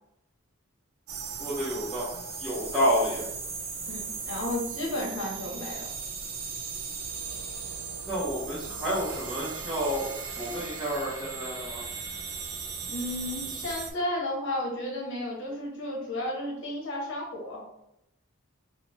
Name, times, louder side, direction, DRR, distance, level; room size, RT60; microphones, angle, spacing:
sound 1, 1.1-13.9, right 5 dB, 85° right, 0.5 m, -37 dB
voice 1, 1.4-2.1 2.4-3.3 8.0-11.8, equal, 5° right, -11 dB, 0.7 m, -29 dB
voice 2, 3.9-5.9 12.9-17.6, left 1 dB, 65° left, -2 dB, 0.8 m, -33 dB
3.1 x 2.0 x 2.9 m, 0.83 s
head